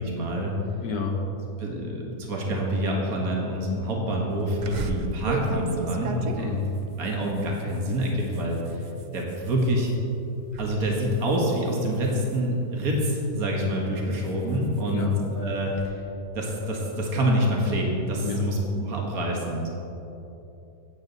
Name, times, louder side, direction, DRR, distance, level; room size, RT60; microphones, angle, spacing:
voice 1, 0.2-0.6 1.1-1.2 1.6-6.5 7.0-8.8 9.1-9.9 10.6-16.0 16.3-19.7, equal, 65° right, -2 dB, 2.1 m, -26 dB
voice 2, 0.8-1.2 6.4-6.7 14.8-15.2 18.2-18.5, left 5 dB, 70° left, 2 dB, 1.7 m, -30 dB
sound 1, 4.6-10.0 10.4-10.8 11.1-13.2 13.7-15.9, right 4 dB, 80° right, 0.4 m, -37 dB
15.5 x 8.7 x 4.1 m, 3.0 s
omnidirectional pair, 1.7 m